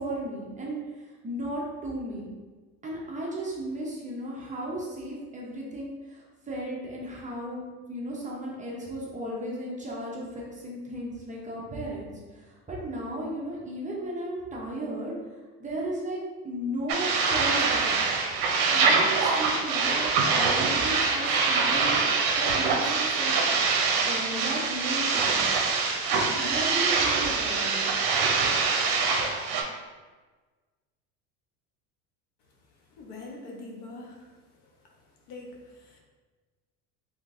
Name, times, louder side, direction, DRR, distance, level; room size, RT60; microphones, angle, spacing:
voice 1, 0.0-2.3 2.8-7.6 7.9-15.1 15.6-18.0 18.7-21.9 22.4-23.4 24.0-25.7 26.1-28.0, right 1 dB, 20° right, -4 dB, 0.7 m, -35 dB
sound 1, 16.9-29.6, right 4 dB, 70° right, 0.7 m, -24 dB
voice 2, 33.0-34.2 35.3-36.0, left 2 dB, 65° left, -1 dB, 0.9 m, -43 dB
3.7 x 3.3 x 2.5 m, 1.3 s
cardioid pair, 125°, 41 cm